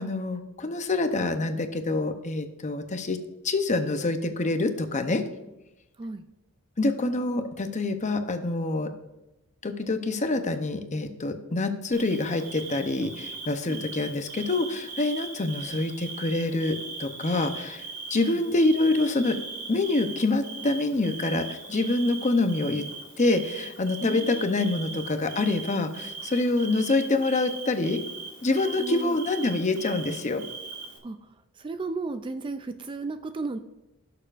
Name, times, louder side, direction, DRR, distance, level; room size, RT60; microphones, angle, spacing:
voice 1, 0.0-3.2 3.4-5.2 6.8-8.9 9.6-17.8 18.1-19.4 19.7-22.8 23.2-28.0 28.4-30.4, left 2 dB, 35° left, 7 dB, 0.7 m, -26 dB
Bird / Cricket, 11.9-31.0, right 4 dB, 80° right, 1.6 m, -40 dB
voice 2, 18.1-18.4 24.0-24.9 28.8-29.2 31.0-31.2 31.6-33.6, right 3 dB, 20° right, 9 dB, 0.3 m, -34 dB
16.5 x 6.8 x 2.5 m, 0.97 s
head